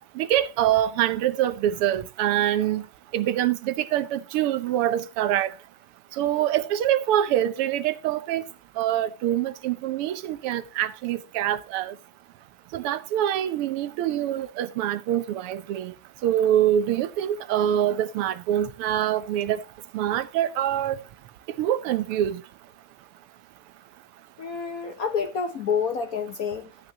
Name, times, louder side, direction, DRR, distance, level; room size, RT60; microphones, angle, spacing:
voice 1, 0.2-2.9 3.1-5.5 6.1-8.4 8.8-12.0 12.7-15.9 16.2-19.6 19.9-21.0 21.6-22.4, right 11 dB, 85° right, 1.7 m, -25 dB
voice 2, 24.4-26.7, left 6 dB, 60° left, 1.0 m, -28 dB
12.5 x 8.8 x 2.8 m
omnidirectional pair, 2.4 m